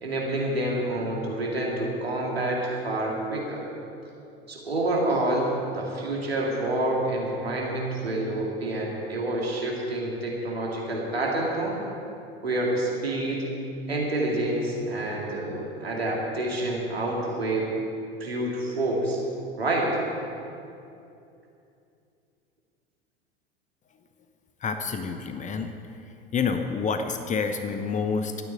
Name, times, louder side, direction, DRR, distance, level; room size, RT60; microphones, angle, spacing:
voice 1, 0.0-2.6 2.8-3.7 4.5-5.5 5.7-11.8 12.4-13.5 13.9-17.7 18.2-19.2 19.6-20.0, right 1 dB, 80° right, -2 dB, 2.5 m, -28 dB
voice 2, 24.6-25.7 26.3-28.4, left 5 dB, 25° left, 7 dB, 0.9 m, -28 dB
13.5 x 9.4 x 8.8 m, 2.6 s
figure-of-eight pair, 80°, 30 cm